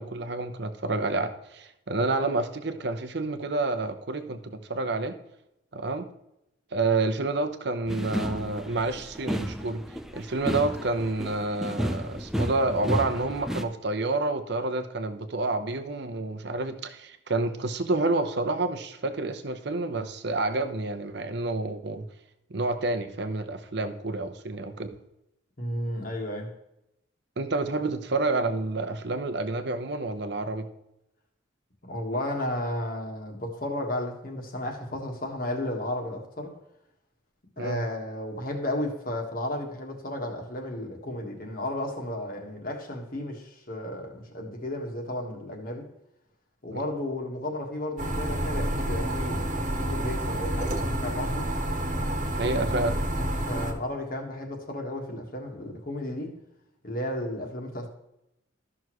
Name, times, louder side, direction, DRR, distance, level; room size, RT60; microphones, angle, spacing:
voice 1, 0.0-5.2 5.7-6.1 6.7-9.8 10.1-22.0 22.5-24.9 27.4-30.7 37.6-37.8 46.7-46.8 52.3-53.0, right 2 dB, 60° right, 0.8 m, -29 dB
sound 1, 7.9-13.6, equal, ahead, 0.4 m, -32 dB
voice 2, 25.6-26.5 31.8-36.5 37.6-45.9 46.6-51.5 53.5-56.3 56.8-57.9, left 1 dB, 45° left, 1.5 m, -33 dB
sound 2, 48.0-53.7, right 1 dB, 40° right, 1.4 m, -29 dB
13.0 x 6.2 x 3.1 m
head